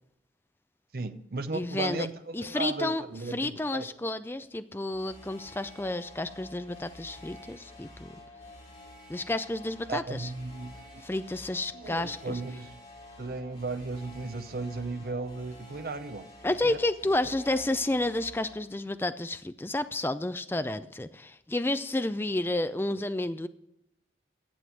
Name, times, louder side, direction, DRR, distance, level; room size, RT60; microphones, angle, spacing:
voice 1, 0.9-3.9 9.9-11.0 11.7-12.7 13.2-16.8, right 3 dB, 55° right, 0.7 m, -36 dB
voice 2, 1.5-2.1 2.3-3.0 3.3-8.1 9.1-10.3 11.0-12.4 16.4-23.5, left 2 dB, 10° left, 0.4 m, -31 dB
sound 1, 4.9-18.6, left 1 dB, 35° left, 2.7 m, -50 dB
11.5 x 7.6 x 7.8 m
head